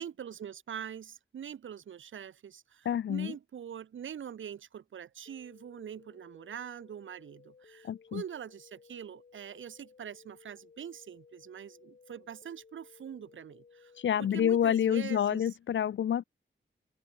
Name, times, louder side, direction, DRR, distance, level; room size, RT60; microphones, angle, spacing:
voice 1, 0.0-13.9 14.2-15.6, right 8 dB, 80° right, 0.7 m, -44 dB
voice 2, 2.9-3.3 7.8-8.2 14.0-16.2, left 9 dB, 70° left, 0.5 m, -28 dB
sound 1, 5.3-14.8, left 5 dB, 45° left, 1.8 m, -59 dB
open air
wide cardioid pair, 175°, 20 cm